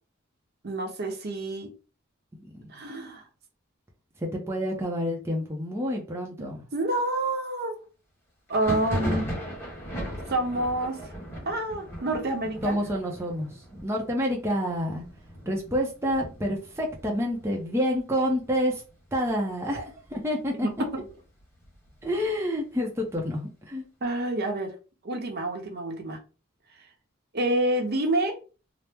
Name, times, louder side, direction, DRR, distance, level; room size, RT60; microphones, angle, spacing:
voice 1, 0.6-1.7 2.7-3.2 6.4-7.8 8.5-9.3 10.3-11.0 11.5-12.8 19.7-19.8 20.6-20.7 24.0-24.7 25.0-26.2 27.3-28.4, right 1 dB, 50° right, 0.7 m, -28 dB
voice 2, 4.2-6.6 12.6-13.5 13.8-15.0 15.5-18.8 19.1-19.8 20.1-20.7 22.0-23.8, equal, 15° right, 0.5 m, -28 dB
Thunder, 8.5-18.0 18.3-18.9 19.2-20.2 20.6-22.3, equal, 10° left, 1.2 m, -37 dB
2.9 x 2.0 x 3.3 m
head